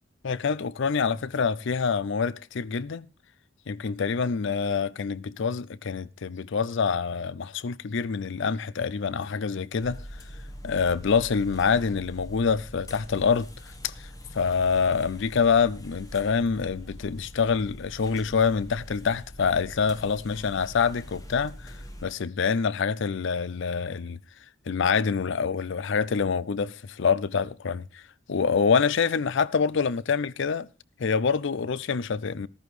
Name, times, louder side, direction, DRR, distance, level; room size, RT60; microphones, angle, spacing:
voice 1, 0.2-3.0 3.7-10.0 10.6-13.5 13.8-14.1 14.3-21.8 22.0-24.2 24.7-28.0 28.3-30.7 31.0-32.5, left 5 dB, 65° left, 0.5 m, -26 dB
sound 1, 9.8-22.1, equal, 20° left, 1.2 m, -43 dB
14.0 x 13.0 x 3.2 m
head